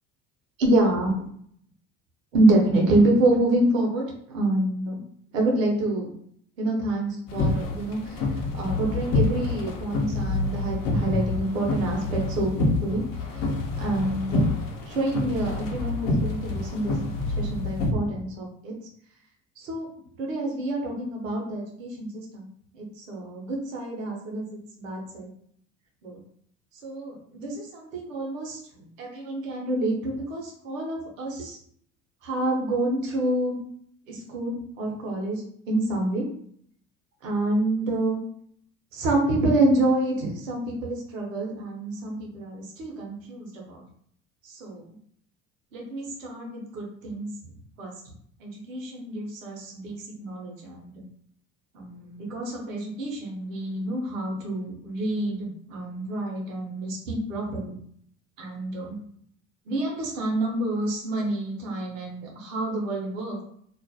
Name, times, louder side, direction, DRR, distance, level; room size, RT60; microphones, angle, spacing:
voice 1, 0.6-1.1 2.3-5.0 5.3-6.1 6.6-8.2 8.5-13.0 13.3-13.5 13.8-14.5 14.9-17.0 17.4-18.7 19.6-19.9 20.2-22.5 22.7-24.4 24.8-25.3 26.0-26.2 26.8-31.6 32.2-33.6 34.1-36.3 37.2-38.2 38.9-43.8 44.4-44.8 45.7-47.3 47.8-47.9 48.4-51.0 51.7-57.8 58.4-59.0 59.7-63.4, right 1 dB, 90° right, 0 dB, 0.8 m, -27 dB
sound 1, 7.3-17.9, left 2 dB, 60° left, 0.7 m, -27 dB
2.3 x 2.1 x 2.6 m, 0.65 s
hypercardioid pair, 65°, 38 cm